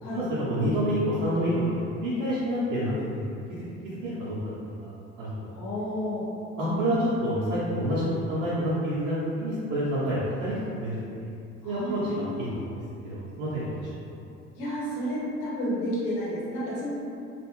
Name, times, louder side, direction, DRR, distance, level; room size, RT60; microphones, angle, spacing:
voice 1, 0.1-3.3 4.0-4.4 4.6-4.9 5.2-5.5 6.6-11.3 11.6-12.8 13.0-13.9, equal, 70° right, -10 dB, 0.8 m, -28 dB
voice 2, 5.5-6.3 6.6-7.0 11.6-12.5 14.6-16.9, equal, 65° left, -8 dB, 1.1 m, -31 dB
2.5 x 2.4 x 2.9 m, 2.6 s
hypercardioid pair, 60°, 40 cm